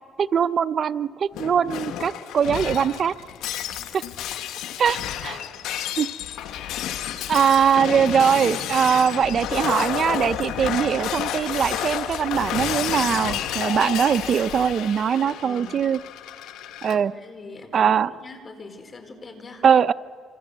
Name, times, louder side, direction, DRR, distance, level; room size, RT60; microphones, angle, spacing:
voice 1, 0.2-3.1 3.9-4.0 4.8-5.4 6.0-6.1 7.3-16.0 16.8-17.1 17.7-18.1 19.6-19.9, right 7 dB, 55° right, 16 dB, 0.6 m, -21 dB
Shatter, 1.3-16.9, left 10 dB, 90° left, 1.6 m, -30 dB
voice 2, 15.2-15.8 16.9-19.7, left 3 dB, 40° left, 7 dB, 4.5 m, -43 dB
28.0 x 26.0 x 8.1 m, 2.4 s
cardioid pair, 90°, 0 cm